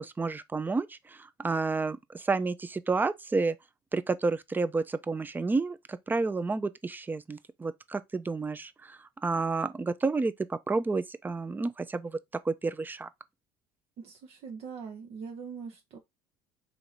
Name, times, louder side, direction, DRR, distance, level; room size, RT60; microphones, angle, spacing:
voice 1, 0.0-3.6 3.9-12.2 12.4-13.1, right 3 dB, 15° right, 0.5 m, -30 dB
voice 2, 14.0-16.0, right 6 dB, 55° right, 0.8 m, -42 dB
4.4 x 2.9 x 4.0 m
hypercardioid pair, 65°, 12 cm